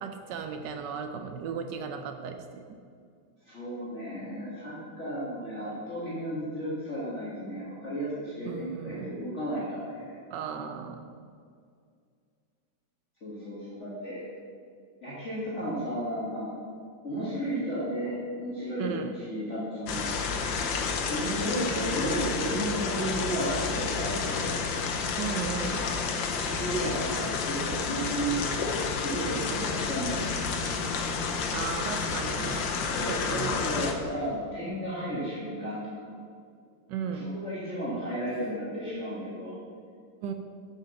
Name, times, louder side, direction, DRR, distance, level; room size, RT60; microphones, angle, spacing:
voice 1, 0.0-2.6 8.4-9.1 10.3-11.0 18.8-19.1 24.8-25.8 31.5-32.7 33.0-33.6 36.9-37.3 40.2-40.3, right 7 dB, 80° right, 6 dB, 1.2 m, -36 dB
voice 2, 3.5-10.2 13.2-14.2 15.0-16.5 17.0-20.1 21.1-24.6 26.4-30.4 32.9-35.8 37.1-39.6, right 1 dB, 40° left, -8 dB, 2.0 m, -33 dB
sound 1, 19.9-33.9, left 5 dB, 90° left, 1.6 m, -30 dB
8.4 x 6.1 x 6.9 m, 2.2 s
omnidirectional pair, 2.0 m